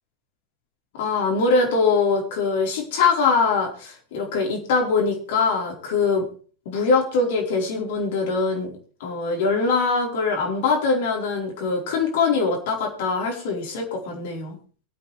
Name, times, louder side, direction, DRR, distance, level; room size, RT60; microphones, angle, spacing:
voice 1, 0.9-6.3 6.6-8.7 9.0-14.6, left 4 dB, 50° left, 1 dB, 4.5 m, -22 dB
23.0 x 8.5 x 3.5 m, 0.40 s
figure-of-eight pair, 90°, 0 cm